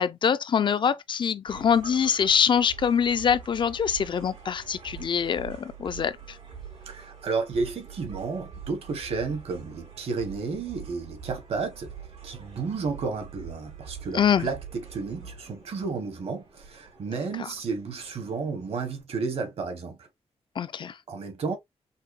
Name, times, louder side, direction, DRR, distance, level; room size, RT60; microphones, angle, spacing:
voice 1, 0.0-6.1 14.1-14.5 20.6-20.9, left 7 dB, 45° left, 0.4 m, -24 dB
sound 1, 1.5-19.0, right 7 dB, 85° right, 3.0 m, -45 dB
voice 2, 6.9-11.9 12.2-20.1 21.1-21.6, right 4 dB, 65° right, 1.1 m, -32 dB
5.7 x 2.1 x 2.4 m
wide cardioid pair, 135°, 11 cm